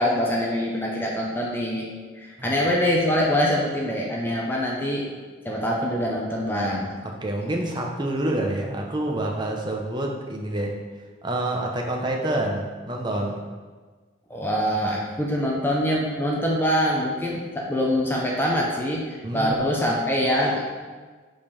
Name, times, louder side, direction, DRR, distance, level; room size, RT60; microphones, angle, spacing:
voice 1, 0.0-1.9 2.2-5.1 5.4-6.9 14.3-20.6, equal, 10° left, -3 dB, 0.8 m, -24 dB
voice 2, 7.0-10.7 11.2-13.4 19.2-19.6, right 1 dB, 20° right, 0 dB, 0.8 m, -27 dB
5.4 x 5.2 x 5.3 m, 1.4 s
head